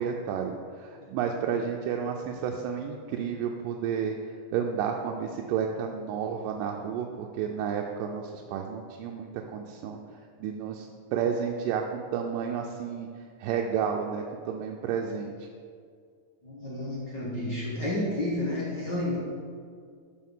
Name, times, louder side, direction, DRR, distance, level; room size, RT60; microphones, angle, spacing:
voice 1, 0.0-4.2 4.5-10.0 10.4-15.5, right 7 dB, 90° right, 1 dB, 2.2 m, -31 dB
voice 2, 16.4-19.2, left 1 dB, 55° left, -6 dB, 1.3 m, -31 dB
13.0 x 5.6 x 3.7 m, 2.2 s
omnidirectional pair, 3.8 m